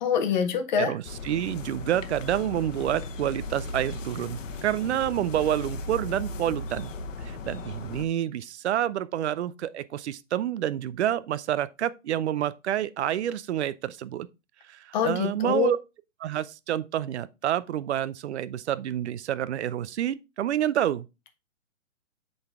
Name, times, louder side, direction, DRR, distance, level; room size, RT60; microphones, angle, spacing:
voice 1, 0.0-0.9 14.9-15.7, left 7 dB, 35° left, 1.0 m, -25 dB
voice 2, 0.8-6.9 7.2-14.3 14.7-15.8 16.2-21.1, right 11 dB, 55° right, 0.5 m, -28 dB
sound 1, 1.0-8.1, left 2 dB, 65° left, 1.0 m, -37 dB
7.6 x 4.0 x 3.5 m
hypercardioid pair, 165°, 40 cm